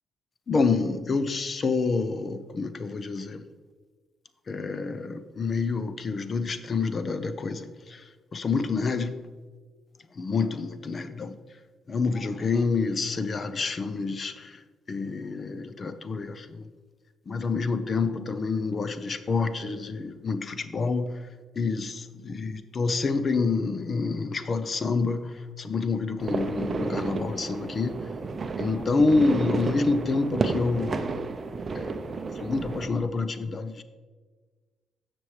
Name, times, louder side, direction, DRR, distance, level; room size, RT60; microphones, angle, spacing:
voice 1, 0.5-3.4 4.5-8.0 8.3-9.2 10.2-11.4 11.9-14.6 14.9-16.7 17.3-21.1 21.6-22.0 22.3-28.0 28.6-31.2 31.7-33.8, left 4 dB, 40° left, 11 dB, 0.7 m, -28 dB
sound 1, 26.2-32.9, right 4 dB, 40° right, 0.6 m, -31 dB
15.5 x 6.1 x 3.3 m, 1.4 s
cardioid pair, 90°, 0 cm